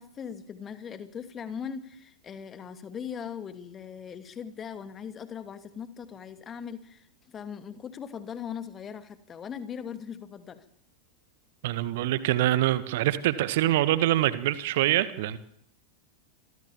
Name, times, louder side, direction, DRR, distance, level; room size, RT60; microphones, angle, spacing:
voice 1, 0.0-10.6, left 7 dB, 25° left, 2.9 m, -39 dB
voice 2, 11.6-15.4, right 14 dB, 50° right, 1.7 m, -25 dB
28.0 x 23.0 x 7.3 m
figure-of-eight pair, 90°, 0 cm